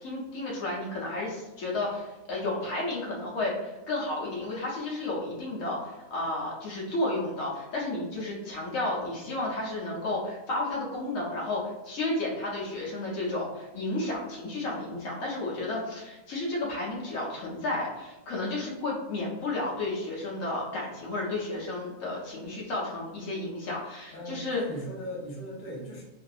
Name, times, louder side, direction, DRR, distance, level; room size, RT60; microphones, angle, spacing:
voice 1, 0.0-24.6, left 2 dB, 75° left, -4 dB, 1.0 m, -32 dB
voice 2, 24.1-26.0, equal, 45° left, -5 dB, 0.8 m, -38 dB
2.6 x 2.3 x 2.3 m, 1.0 s
omnidirectional pair, 1.5 m